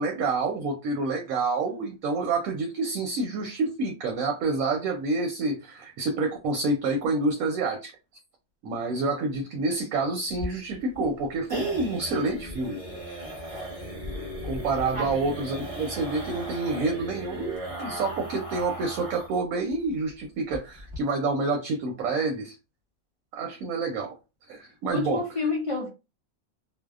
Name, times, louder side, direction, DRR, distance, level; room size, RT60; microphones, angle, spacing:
voice 1, 0.0-7.9 8.6-12.8 14.4-22.6 23.3-24.1 24.5-25.2, right 3 dB, 85° right, 1.0 m, -28 dB
sound 1, 10.3-19.4 19.7-19.8 20.1-20.2 20.5-21.0, equal, 30° right, 0.7 m, -37 dB
voice 2, 24.9-25.9, left 3 dB, 60° left, 0.3 m, -29 dB
2.7 x 2.0 x 2.3 m
omnidirectional pair, 1.4 m